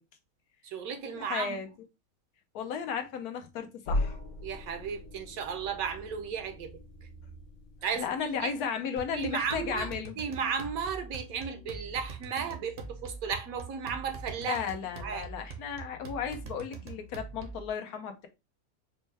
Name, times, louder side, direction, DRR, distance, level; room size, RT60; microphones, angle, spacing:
voice 1, 0.6-1.7 4.4-7.1 7.8-8.5 9.1-14.6 15.0-15.3, right 6 dB, 75° right, 1.1 m, -35 dB
voice 2, 1.1-1.7 2.5-4.2 7.9-10.1 14.4-18.3, left 7 dB, 90° left, 1.2 m, -35 dB
sound 1, 3.8-8.5, left 1 dB, 60° left, 1.0 m, -38 dB
sound 2, 9.0-17.7, right 4 dB, 50° right, 0.7 m, -44 dB
4.4 x 2.1 x 3.2 m
omnidirectional pair, 1.6 m